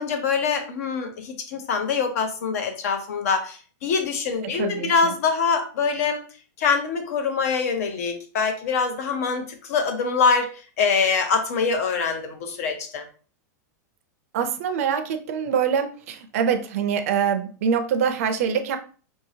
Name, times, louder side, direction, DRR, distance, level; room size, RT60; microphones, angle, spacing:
voice 1, 0.0-6.2 6.6-10.5 10.8-13.0, left 5 dB, 55° left, 7 dB, 0.8 m, -24 dB
voice 2, 4.4-5.1 14.3-18.8, right 7 dB, 50° right, 8 dB, 0.5 m, -24 dB
4.8 x 2.7 x 2.7 m, 0.39 s
supercardioid pair, 170°, 10 cm